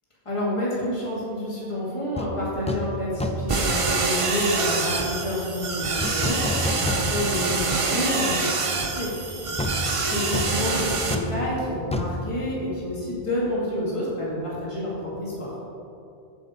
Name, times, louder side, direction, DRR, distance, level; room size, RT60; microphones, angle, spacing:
voice 1, 0.3-15.6, left 1 dB, 30° left, -7 dB, 2.2 m, -29 dB
sound 1, 2.2-2.3 2.7-2.9 3.2-3.6 6.0-7.4 7.8-7.9 9.6-13.2 13.5-13.6, left 1 dB, 10° left, 0.3 m, -30 dB
sound 2, 3.5-11.1, right 3 dB, 35° right, 0.7 m, -26 dB
14.0 x 5.1 x 5.0 m, 2.6 s
omnidirectional pair, 1.1 m